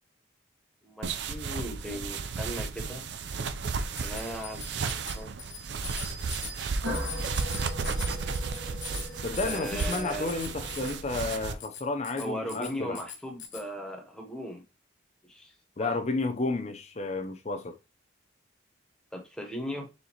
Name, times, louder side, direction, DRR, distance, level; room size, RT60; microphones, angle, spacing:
voice 1, 0.8-3.0 4.0-5.3 9.4-10.3 12.2-14.6 15.2-16.0 19.1-19.9, equal, 5° left, 0.8 m, -38 dB
sound 1, 1.0-11.5, right 4 dB, 60° right, 0.4 m, -34 dB
Bicycle bell, 3.9-13.7, left 7 dB, 70° left, 1.0 m, -43 dB
sound 2, 6.8-11.5, equal, 80° right, 1.1 m, -39 dB
voice 2, 9.2-13.0 15.8-17.8, left 3 dB, 35° left, 0.6 m, -31 dB
4.3 x 3.6 x 2.9 m
head